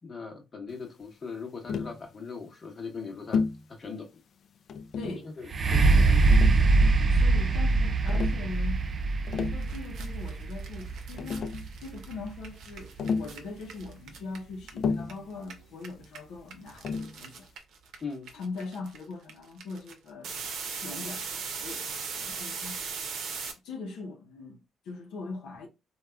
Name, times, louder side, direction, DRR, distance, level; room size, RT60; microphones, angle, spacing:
voice 1, 0.0-3.4 3.8-4.2 5.2-6.7 18.0-18.3, left 5 dB, 35° left, 1.0 m, -40 dB
Tap, 1.7-2.0 3.3-3.6 4.7-5.3 6.3-7.1 8.1-8.4 9.1-9.7 10.8-10.9 11.2-11.7 13.0-13.4 14.8-15.2 16.8-17.2, left 5 dB, 60° left, 0.3 m, -31 dB
voice 2, 5.0-5.3 7.1-8.8 9.5-11.5 11.8-17.5 18.3-20.4 20.8-22.8 23.6-25.7, left 3 dB, 85° left, 0.7 m, -41 dB
sound 1, 5.5-13.2 13.9-14.0, right 3 dB, 40° right, 0.3 m, -24 dB
sound 2, 9.3-9.4 9.6-15.1 15.4-23.5, right 5 dB, 75° right, 0.7 m, -39 dB
3.4 x 2.3 x 2.2 m
cardioid pair, 90°, 0 cm